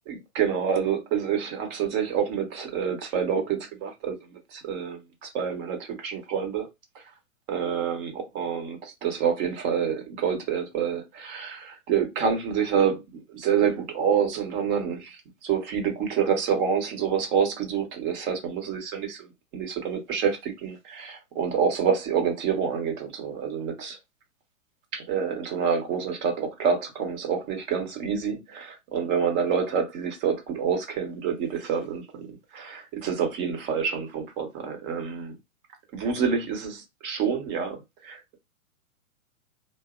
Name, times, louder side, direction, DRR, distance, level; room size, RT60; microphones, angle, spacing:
voice 1, 0.1-4.2 4.5-6.7 7.5-24.0 24.9-32.3 32.5-35.3 35.9-38.4, right 7 dB, 35° right, 0.9 m, -27 dB
2.7 x 2.0 x 2.4 m
hypercardioid pair, 120°, 42 cm